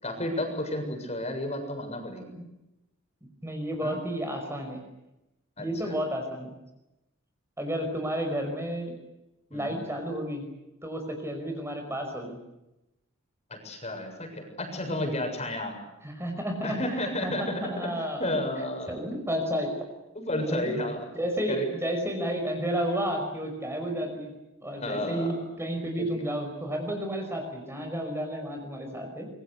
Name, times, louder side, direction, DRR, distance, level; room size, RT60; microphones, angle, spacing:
voice 1, 0.0-2.3 3.8-4.0 5.6-5.9 9.5-9.8 13.5-15.8 16.6-17.7 18.2-19.0 20.2-21.0 21.5-21.6 24.6-25.3 26.0-26.1, left 1 dB, 30° left, 5 dB, 7.3 m, -32 dB
voice 2, 3.4-4.8 5.6-6.5 7.6-8.9 9.5-10.4 10.8-12.4 16.0-18.3 18.9-19.8 20.5-20.8 21.1-24.3 24.6-29.3, equal, 10° right, 4 dB, 5.4 m, -31 dB
26.5 x 24.5 x 8.2 m, 0.93 s
head